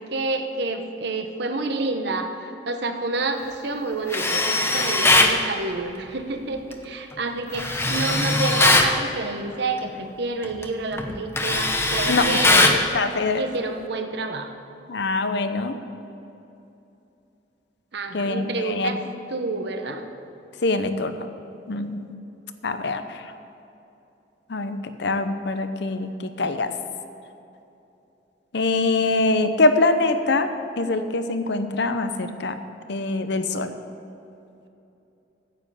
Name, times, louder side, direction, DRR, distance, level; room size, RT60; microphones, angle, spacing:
voice 1, 0.0-2.3 2.7-12.8 13.4-14.5 17.9-19.0 19.3-20.1, right 3 dB, 65° right, 6 dB, 1.0 m, -29 dB
Tools, 4.1-5.4 7.5-8.9 10.4-10.6 11.0-12.8, left 2 dB, 15° left, 0.9 m, -20 dB
voice 2, 12.6-13.4 14.9-15.8 18.1-19.0 20.6-21.3 21.7-22.1 22.6-23.3 24.5-26.7 28.5-30.5 30.8-32.6 32.9-33.7, left 3 dB, 65° left, 9 dB, 0.8 m, -24 dB
9.6 x 7.7 x 8.3 m, 2.8 s
head